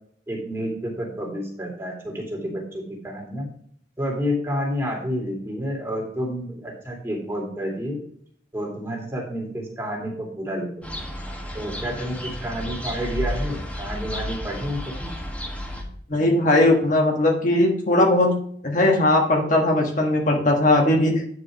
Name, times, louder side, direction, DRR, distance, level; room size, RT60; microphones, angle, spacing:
voice 1, 0.3-3.5 4.0-8.0 8.5-11.0 11.5-15.1, equal, 15° right, -2 dB, 2.4 m, -29 dB
sound 1, 10.8-15.8, equal, 5° left, 1.4 m, -32 dB
voice 2, 16.1-18.4 18.6-21.2, left 1 dB, 45° left, 1 dB, 1.3 m, -19 dB
9.7 x 4.9 x 4.8 m, 0.62 s
head